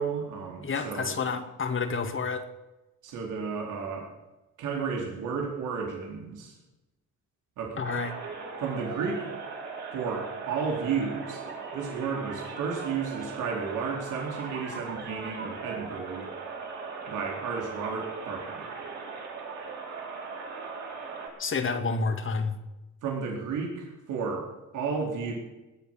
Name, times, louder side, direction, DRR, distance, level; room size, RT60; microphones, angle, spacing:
voice 1, 0.0-1.2 3.0-4.1 4.6-6.5 7.6-8.0 8.6-9.3 9.9-11.4 11.7-16.3 17.1-18.7 23.0-24.5 24.7-25.3, right 5 dB, 85° right, 0 dB, 4.0 m, -32 dB
voice 2, 0.6-2.5 7.8-8.1 21.4-22.5, left 4 dB, 40° left, 7 dB, 2.3 m, -29 dB
sound 1, 7.8-21.3, right 4 dB, 60° right, 8.0 m, -39 dB
19.5 x 9.3 x 7.5 m, 1.0 s
cardioid pair, 90°, 30 cm